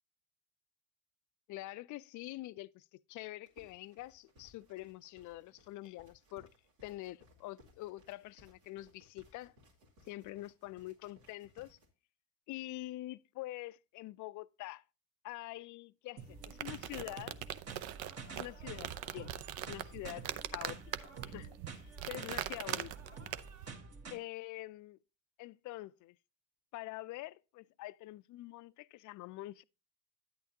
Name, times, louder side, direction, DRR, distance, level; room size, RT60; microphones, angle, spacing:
voice 1, 1.5-6.5 6.8-9.5 10.1-11.8 12.5-14.8 15.2-17.4 18.3-19.3 19.7-23.3 24.1-25.0 25.4-26.2 26.7-29.6, left 17 dB, 45° left, 0.4 m, -46 dB
sound 1, 3.4-11.9, left 1 dB, 75° right, 2.4 m, -65 dB
sound 2, 16.2-24.2, right 4 dB, 35° right, 1.4 m, -49 dB
sound 3, 16.2-23.7, right 12 dB, 55° right, 0.6 m, -42 dB
9.6 x 8.4 x 2.8 m
hypercardioid pair, 65°, 42 cm